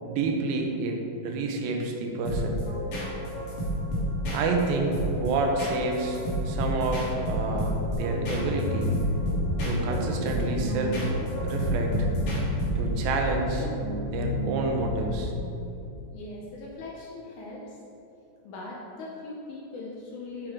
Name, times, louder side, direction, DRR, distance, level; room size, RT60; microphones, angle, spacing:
voice 1, 0.0-2.6 4.3-6.2 6.5-9.0 9.6-11.1 11.4-12.1 12.8-13.7 14.1-15.3, right 3 dB, 80° right, 2 dB, 2.6 m, -29 dB
sound 1, 2.2-13.1, equal, 50° left, 2.2 m, -31 dB
sound 2, 7.9-15.3, equal, 60° right, 1.1 m, -31 dB
voice 2, 16.1-17.8 18.4-20.5, left 2 dB, 75° left, -2 dB, 1.9 m, -40 dB
8.5 x 7.1 x 3.6 m, 2.8 s
omnidirectional pair, 4.2 m